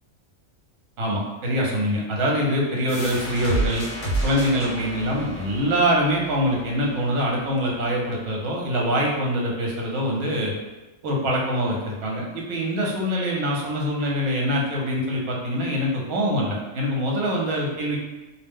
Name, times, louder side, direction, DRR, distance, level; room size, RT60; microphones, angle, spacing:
voice 1, 1.0-3.9 4.2-10.5 11.0-18.0, equal, 70° right, -2 dB, 1.1 m, -24 dB
sound 1, 2.9-8.3, right 1 dB, 65° left, 1.1 m, -31 dB
2.5 x 2.1 x 3.5 m, 1.1 s
omnidirectional pair, 1.4 m